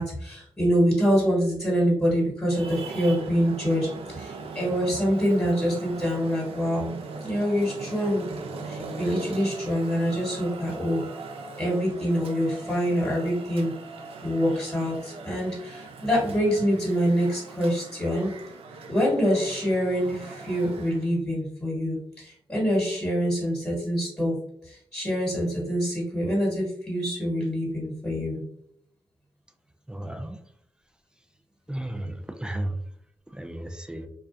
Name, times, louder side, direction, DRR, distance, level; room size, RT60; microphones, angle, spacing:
voice 1, 0.0-8.2 8.6-11.0 11.6-13.7 14.2-18.3 18.9-24.4 24.6-28.4, equal, 15° left, -5 dB, 1.3 m, -25 dB
Traffic noise roadway noise, 2.5-21.1, right 4 dB, 85° right, 0.4 m, -40 dB
voice 2, 29.9-30.4 31.7-32.8 33.3-34.1, right 1 dB, 10° right, 6 dB, 0.3 m, -34 dB
2.3 x 2.1 x 2.5 m, 0.70 s
cardioid pair, 55°, 10 cm